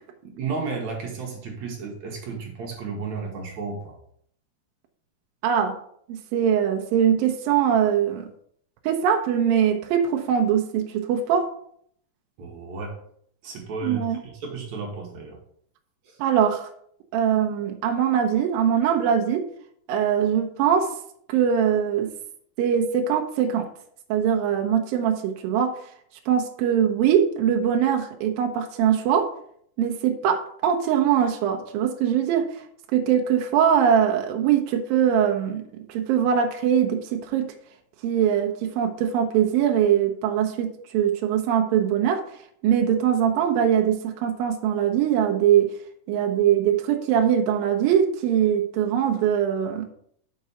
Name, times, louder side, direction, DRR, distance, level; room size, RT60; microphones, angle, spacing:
voice 1, 0.2-4.0 12.4-13.0 13.4-14.0 14.4-15.4 16.1-16.2, right 4 dB, 60° right, 0 dB, 2.0 m, -33 dB
voice 2, 5.4-5.8 6.1-8.3 8.8-11.5 13.8-14.2 16.2-16.7 17.1-19.5 19.9-20.9 21.3-22.1 22.6-23.7 24.1-25.8 26.3-29.3 29.8-32.6 32.9-35.6 35.9-37.5 38.0-42.2 42.6-45.7 46.1-49.9, right 9 dB, 80° right, 3 dB, 2.1 m, -22 dB
5.9 x 5.6 x 5.5 m, 0.66 s
omnidirectional pair, 4.8 m